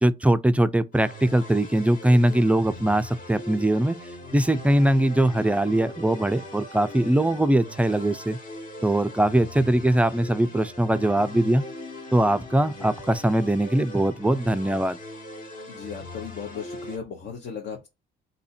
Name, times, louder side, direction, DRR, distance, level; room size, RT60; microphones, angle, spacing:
voice 1, 0.0-4.0 4.3-8.4 8.8-11.6 12.1-15.0, right 1 dB, 5° right, 0.3 m, -21 dB
sound 1, 0.9-17.0, left 1 dB, 45° left, 1.3 m, -40 dB
voice 2, 15.7-17.9, left 6 dB, 65° left, 1.0 m, -36 dB
2.7 x 2.5 x 4.2 m
cardioid pair, 90°, 20 cm